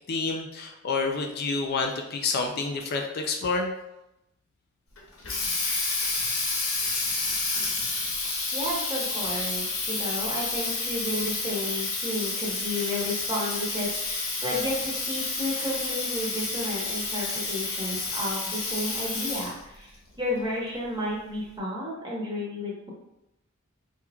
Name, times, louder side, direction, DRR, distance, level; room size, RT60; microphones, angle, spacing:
voice 1, 0.1-3.7, left 4 dB, 50° left, 3 dB, 0.4 m, -28 dB
Water tap faucet, 5.0-19.7, left 3 dB, 80° left, 1.2 m, -30 dB
voice 2, 8.5-22.9, left 1 dB, 20° right, -4 dB, 1.1 m, -32 dB
4.4 x 3.6 x 2.3 m, 0.88 s
head